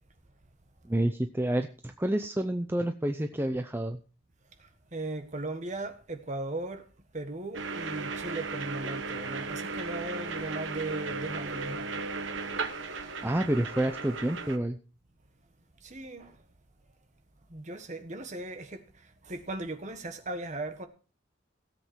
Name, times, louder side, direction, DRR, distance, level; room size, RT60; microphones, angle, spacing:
voice 1, 0.8-4.0 13.2-14.8, right 1 dB, 10° right, 0.6 m, -29 dB
voice 2, 4.6-6.9 7.1-12.0 15.8-16.4 17.5-20.9, right 2 dB, 35° right, 1.5 m, -38 dB
sound 1, 7.5-14.6, right 4 dB, 65° right, 1.2 m, -36 dB
16.5 x 7.8 x 4.6 m
head